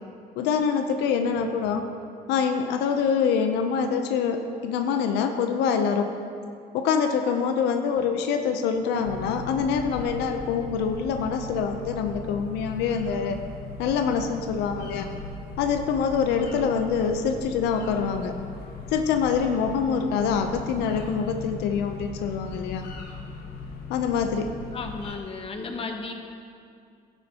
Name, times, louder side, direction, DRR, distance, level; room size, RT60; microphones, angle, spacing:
voice 1, 0.4-1.8 2.3-6.1 6.7-13.4 13.8-15.1 15.6-18.3 18.9-22.8 23.9-24.5, left 6 dB, 90° left, 6 dB, 0.6 m, -25 dB
sound 1, 9.0-25.2, left 4 dB, 70° left, 1.4 m, -38 dB
voice 2, 24.7-26.1, left 4 dB, 35° left, 4 dB, 1.0 m, -34 dB
12.0 x 9.9 x 2.9 m, 2.4 s
cardioid pair, 110°, 17 cm